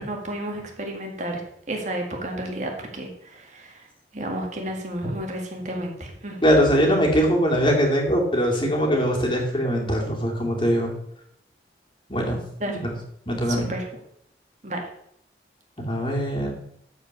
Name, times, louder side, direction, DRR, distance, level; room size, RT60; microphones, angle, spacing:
voice 1, 0.0-1.4 1.7-3.8 4.1-6.4 12.6-12.8 13.5-13.9 14.6-14.8, right 1 dB, 40° right, 1 dB, 1.9 m, -31 dB
voice 2, 6.4-10.9 12.1-12.4 12.7-12.9 13.3-13.7 15.9-16.5, equal, 30° left, -1 dB, 2.5 m, -22 dB
13.5 x 4.9 x 6.7 m, 0.73 s
head